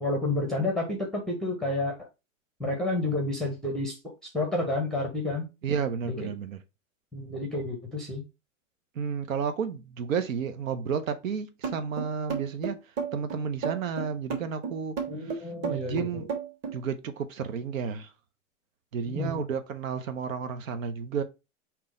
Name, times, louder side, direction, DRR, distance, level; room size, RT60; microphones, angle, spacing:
voice 1, 0.0-2.1 2.6-5.5 6.1-6.3 7.1-8.2 15.1-16.2 19.1-19.5, left 2 dB, ahead, 0.6 m, -30 dB
voice 2, 5.6-6.6 8.9-12.8 13.1-16.3 16.7-18.1 18.9-21.2, right 6 dB, 85° right, 0.8 m, -32 dB
sound 1, 11.6-16.8, right 6 dB, 30° right, 1.3 m, -33 dB
3.7 x 2.9 x 4.9 m
hypercardioid pair, 130°, 39 cm